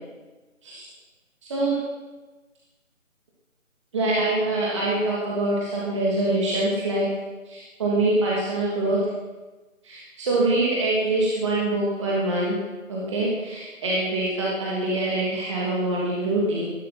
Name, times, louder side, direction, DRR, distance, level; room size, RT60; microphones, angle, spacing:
voice 1, 1.4-1.7 3.9-7.0 7.5-9.0 9.8-12.6 12.9-16.6, right 2 dB, 20° right, -5 dB, 2.8 m, -24 dB
20.0 x 12.5 x 5.8 m, 1.2 s
figure-of-eight pair, 155°, 41 cm